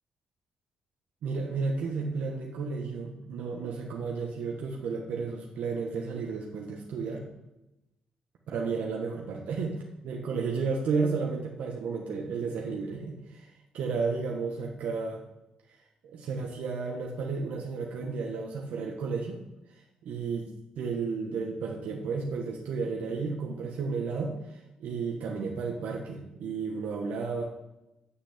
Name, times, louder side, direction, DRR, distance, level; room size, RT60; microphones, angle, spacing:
voice 1, 1.2-7.2 8.5-15.2 16.0-19.4 19.7-27.4, right 4 dB, 80° right, 0 dB, 1.5 m, -33 dB
8.1 x 6.6 x 8.2 m, 0.93 s
cardioid pair, 145°, 2 cm